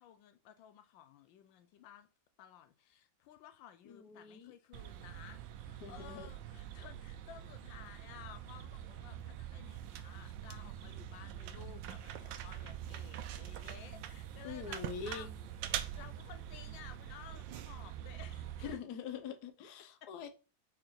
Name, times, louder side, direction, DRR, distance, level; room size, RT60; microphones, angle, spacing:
voice 1, 0.0-2.1 2.4-15.3 15.7-18.8 20.0-20.1, left 10 dB, 85° left, 1.3 m, -55 dB
voice 2, 3.9-4.5 5.8-6.3 14.4-15.3 18.6-20.3, left 6 dB, 65° left, 1.3 m, -44 dB
sound 1, 4.7-18.7, right 10 dB, 80° right, 1.3 m, -44 dB
4.8 x 4.5 x 4.4 m
omnidirectional pair, 2.0 m